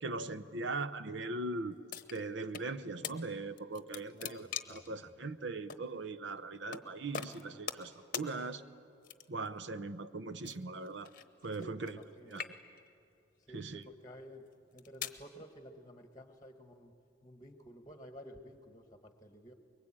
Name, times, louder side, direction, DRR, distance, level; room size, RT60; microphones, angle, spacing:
voice 1, 0.0-1.7 2.1-8.6 9.3-11.1 11.4-12.0 12.2-12.4 13.5-13.8, right 3 dB, 60° right, 13 dB, 0.7 m, -40 dB
sound 1, 1.9-2.7 3.0-3.2 3.6-4.9 5.7-5.8 6.7-6.9 7.1-7.9 8.1-8.3 9.0-9.5 10.4-12.0 12.3-12.9 13.6-13.8 14.5-15.2, left 8 dB, 45° left, 0.9 m, -42 dB
voice 2, 4.1-4.9 11.6-12.5 13.5-14.4 14.7-16.9 17.2-19.5, equal, 20° left, 6 dB, 1.3 m, -52 dB
24.5 x 22.5 x 8.7 m, 2.5 s
head